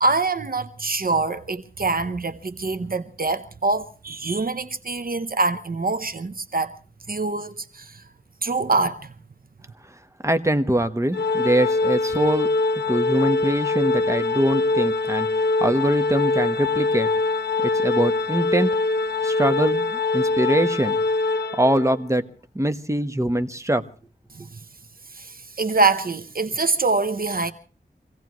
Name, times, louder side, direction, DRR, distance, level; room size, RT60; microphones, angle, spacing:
voice 1, 0.0-6.8 7.1-8.0 8.4-9.1 24.3-24.6 25.1-27.5, right 3 dB, 60° right, 0.9 m, -24 dB
voice 2, 10.2-12.5 12.9-17.1 17.6-18.7 19.2-21.0 21.5-22.2 22.5-23.8, right 1 dB, 15° right, 1.2 m, -23 dB
Organ, 11.1-22.0, left 3 dB, 80° left, 0.9 m, -23 dB
26.0 x 17.0 x 3.1 m
wide cardioid pair, 55°, 17 cm